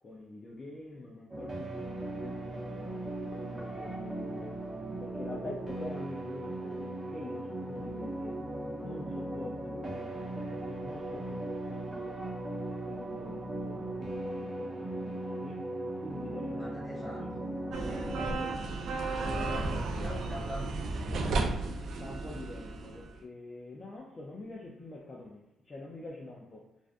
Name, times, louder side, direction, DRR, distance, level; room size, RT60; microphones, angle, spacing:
voice 1, 0.0-4.5 5.0-8.4 8.8-12.1 12.5-15.6 16.0-17.3 17.8-18.8 19.1-20.2 21.9-26.7, left 2 dB, 35° left, -3 dB, 0.4 m, -45 dB
sound 1, 1.3-18.3, right 1 dB, 20° right, 0.7 m, -38 dB
voice 2, 16.6-17.4 20.0-21.6, equal, 15° left, -6 dB, 1.3 m, -44 dB
sound 2, 17.7-23.1, right 3 dB, 65° right, 0.3 m, -34 dB
2.5 x 2.2 x 2.5 m, 0.93 s
cardioid pair, 90°, 0 cm